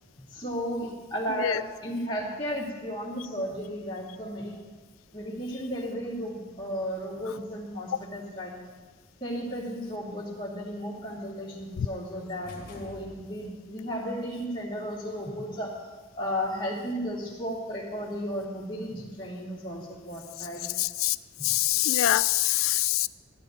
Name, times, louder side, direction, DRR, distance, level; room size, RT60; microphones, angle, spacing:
voice 1, 0.3-4.6 5.1-8.5 9.2-15.7 16.2-20.6 21.4-21.5, equal, 25° left, -5 dB, 2.5 m, -34 dB
sound 1, 12.4-13.7, left 1 dB, 45° left, 1.9 m, -46 dB
voice 2, 20.8-21.2 21.4-23.1, left 14 dB, 85° left, 18 dB, 0.4 m, -24 dB
13.0 x 12.5 x 3.9 m, 1.3 s
head